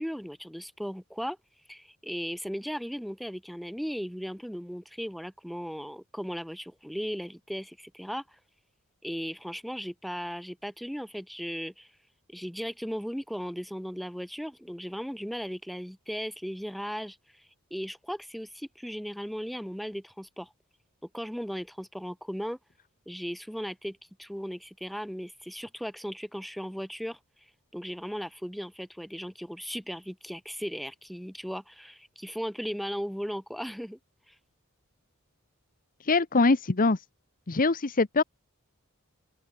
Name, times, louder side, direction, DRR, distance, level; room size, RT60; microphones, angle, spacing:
voice 1, 0.0-1.4 1.7-8.2 9.0-11.9 12.3-17.2 17.7-20.5 21.1-22.6 23.1-27.2 27.7-34.0 34.3-34.4, equal, ahead, 2.2 m, -37 dB
voice 2, 36.1-37.0 37.5-38.2, left 3 dB, 40° left, 0.9 m, -23 dB
open air
head